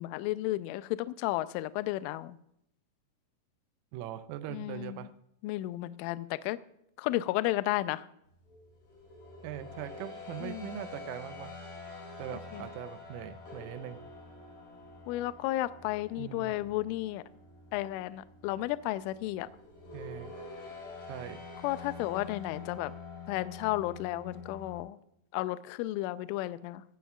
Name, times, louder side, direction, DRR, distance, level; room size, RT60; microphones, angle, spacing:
voice 1, 0.0-2.4 4.5-5.1 5.4-6.6 7.0-8.1 10.4-10.8 12.3-12.7 15.1-17.2 17.7-19.5 21.6-22.9 23.3-25.0 25.3-26.8, left 16 dB, 85° left, 14 dB, 2.9 m, -33 dB
voice 2, 3.9-5.1 9.4-11.6 12.2-14.0 16.2-16.6 19.9-20.3 21.1-21.4, right 11 dB, 90° right, 12 dB, 3.3 m, -41 dB
sound 1, 8.4-24.8, left 3 dB, 65° left, 8.3 m, -47 dB
16.5 x 15.5 x 2.4 m, 0.76 s
omnidirectional pair, 5.9 m